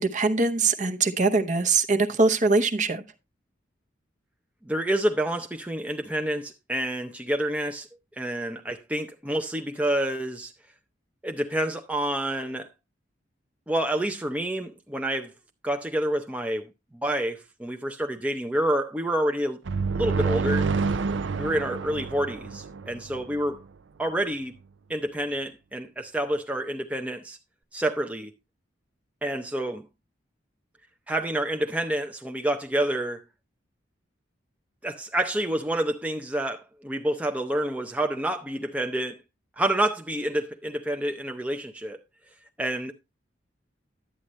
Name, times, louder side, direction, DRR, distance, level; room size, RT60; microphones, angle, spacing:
voice 1, 0.0-3.0, right 3 dB, 40° right, 0.8 m, -22 dB
voice 2, 4.7-7.9 8.2-10.5 11.2-12.7 13.7-15.3 15.6-16.7 17.0-19.6 20.0-20.7 21.4-23.6 24.0-24.5 24.9-27.4 27.7-28.3 29.2-29.8 31.1-33.2 34.8-39.2 39.6-42.0 42.6-42.9, right 1 dB, 5° right, 0.5 m, -28 dB
sound 1, 19.7-23.4, right 4 dB, 80° right, 0.5 m, -28 dB
11.0 x 8.7 x 3.0 m
head